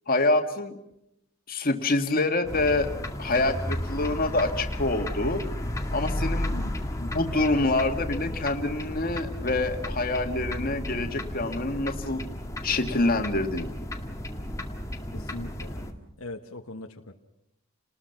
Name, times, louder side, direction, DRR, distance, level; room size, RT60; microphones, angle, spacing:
voice 1, 0.1-0.8 1.5-2.9 3.2-5.4 5.9-6.6 7.0-12.2 12.6-13.7, left 2 dB, 40° left, 5 dB, 2.2 m, -26 dB
sound 1, 2.4-15.9, left 1 dB, 15° left, 2.0 m, -33 dB
voice 2, 15.1-15.9 16.2-17.1, left 2 dB, 75° left, 4 dB, 1.4 m, -40 dB
30.0 x 20.0 x 6.0 m, 0.83 s
head